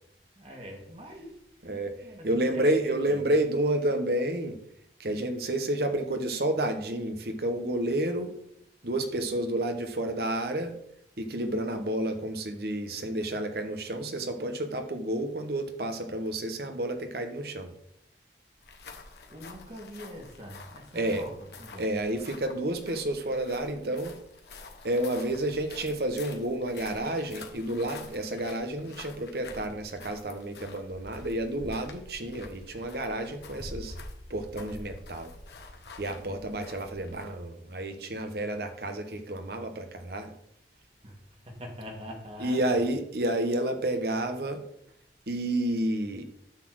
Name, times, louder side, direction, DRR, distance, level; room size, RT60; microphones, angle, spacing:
voice 1, 0.4-1.4 2.0-3.3 19.3-21.9 41.0-42.8, equal, 35° right, 1.8 m, -44 dB
voice 2, 1.6-1.9 2.2-4.6 5.0-8.3 8.8-10.7 11.2-17.7 20.9-21.2 21.8-24.1 24.8-33.9 34.3-35.3 36.0-40.3 42.4-44.6 45.3-46.2, right 1 dB, 60° right, 1.1 m, -30 dB
sound 1, 18.6-37.4, left 3 dB, 65° left, 1.2 m, -47 dB
9.8 x 4.2 x 6.4 m
head